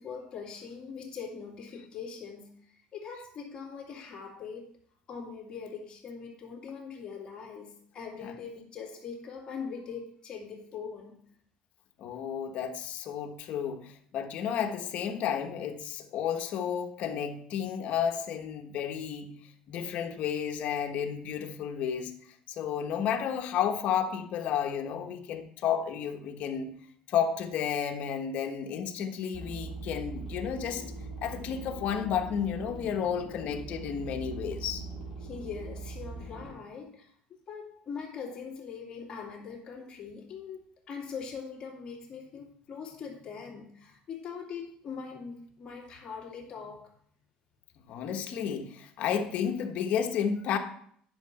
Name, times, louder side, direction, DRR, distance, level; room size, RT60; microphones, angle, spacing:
voice 1, 0.0-4.7 5.1-11.2 35.2-37.1 37.5-46.9, left 6 dB, 30° left, -2 dB, 2.4 m, -42 dB
voice 2, 12.0-19.3 19.7-22.2 22.5-26.7 27.1-30.8 31.2-34.8 47.9-50.6, left 8 dB, 55° left, 4 dB, 1.1 m, -32 dB
sound 1, 29.3-36.5, right 3 dB, 5° right, 4.0 m, -41 dB
10.0 x 6.5 x 4.2 m, 0.63 s
cardioid pair, 150°, 3 cm